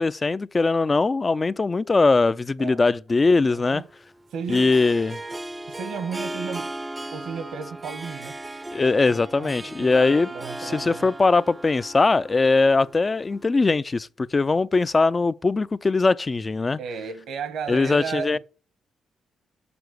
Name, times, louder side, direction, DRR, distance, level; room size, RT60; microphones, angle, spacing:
voice 1, 0.0-3.8 4.5-5.2 8.7-10.3 10.6-16.8 17.7-18.4, left 3 dB, 35° left, 0.4 m, -21 dB
Harp, 3.1-13.5, right 1 dB, 20° right, 0.5 m, -37 dB
voice 2, 3.5-3.9 4.3-4.8 5.7-6.7 7.1-8.4 9.4-11.1 16.8-18.4, right 6 dB, 80° right, 1.1 m, -34 dB
7.0 x 5.8 x 6.3 m
supercardioid pair, 60°, 0 cm